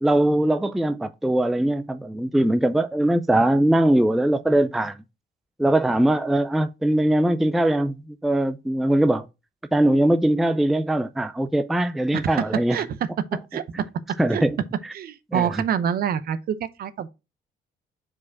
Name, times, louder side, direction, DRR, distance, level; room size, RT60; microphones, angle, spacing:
voice 1, 0.0-5.0 5.6-9.3 9.7-12.8 14.2-14.6 15.3-15.5, right 1 dB, ahead, 0.3 m, -21 dB
voice 2, 12.1-12.4 12.7-12.9 13.5-13.6 14.3-14.4 14.9-17.1, right 8 dB, 60° right, 0.7 m, -26 dB
4.8 x 4.8 x 4.6 m
cardioid pair, 140°, 18 cm